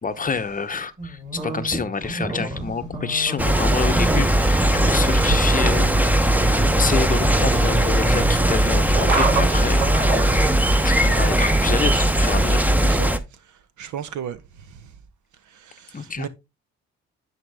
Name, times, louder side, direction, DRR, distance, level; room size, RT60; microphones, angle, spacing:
voice 1, 0.0-9.9 10.3-10.5 10.8-12.7 15.9-16.3, left 5 dB, 30° left, 0.8 m, -28 dB
sound 1, 1.0-10.6, right 2 dB, 25° right, 4.2 m, -29 dB
sound 2, 3.4-13.2, right 1 dB, 5° right, 0.7 m, -19 dB
voice 2, 12.8-13.1 13.8-14.8 15.5-16.3, right 9 dB, 75° right, 1.0 m, -35 dB
10.0 x 4.6 x 3.4 m
cardioid pair, 90°, 30 cm